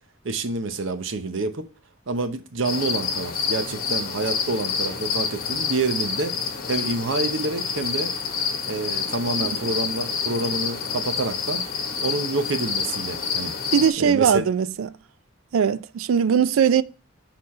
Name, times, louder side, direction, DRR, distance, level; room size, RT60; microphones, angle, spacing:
voice 1, 0.2-1.7 2.1-6.3 6.7-8.1 8.7-11.6 12.0-13.5 14.0-14.4, right 3 dB, 65° right, 0.8 m, -27 dB
sound 1, 2.7-13.9, left 6 dB, 50° left, 1.2 m, -28 dB
voice 2, 13.7-14.9 15.5-16.8, right 7 dB, 90° right, 0.4 m, -20 dB
6.6 x 4.0 x 4.2 m
head